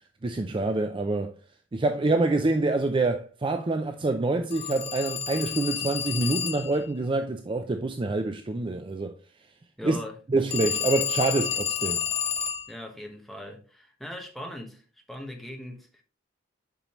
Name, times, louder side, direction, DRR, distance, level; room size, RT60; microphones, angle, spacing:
voice 1, 0.2-1.4 1.7-9.1 9.8-10.0 10.3-12.0, right 2 dB, 25° right, 0.4 m, -26 dB
Telephone, 4.5-6.8 10.5-12.7, left 8 dB, 35° left, 0.6 m, -30 dB
voice 2, 9.8-10.2 12.7-14.8 15.1-16.0, left 1 dB, ahead, 1.1 m, -40 dB
7.3 x 5.4 x 3.0 m
head